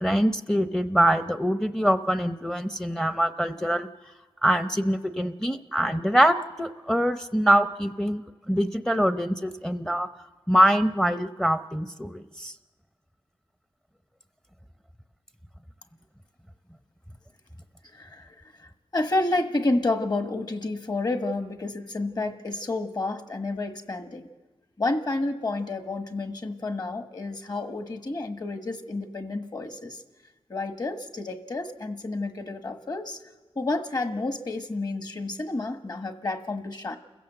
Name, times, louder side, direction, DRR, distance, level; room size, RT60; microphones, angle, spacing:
voice 1, 0.0-3.9 4.4-10.1 10.5-12.5, equal, 5° left, 10 dB, 0.7 m, -24 dB
voice 2, 18.0-18.3 18.9-24.3 24.8-30.0 30.5-33.2 33.5-37.0, left 2 dB, 40° left, 7 dB, 1.4 m, -30 dB
29.0 x 15.5 x 7.8 m, 1.2 s
wide cardioid pair, 105°, 11 cm